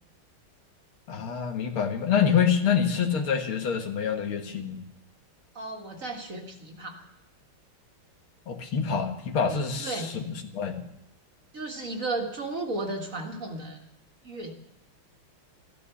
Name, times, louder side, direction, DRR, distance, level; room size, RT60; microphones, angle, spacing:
voice 1, 1.1-4.8 8.5-10.8, left 7 dB, 75° left, 5 dB, 2.3 m, -26 dB
voice 2, 5.5-7.1 9.5-10.1 11.5-13.9 14.2-14.5, right 2 dB, 40° right, 2 dB, 2.0 m, -34 dB
14.5 x 14.0 x 7.0 m, 0.89 s
omnidirectional pair, 2.3 m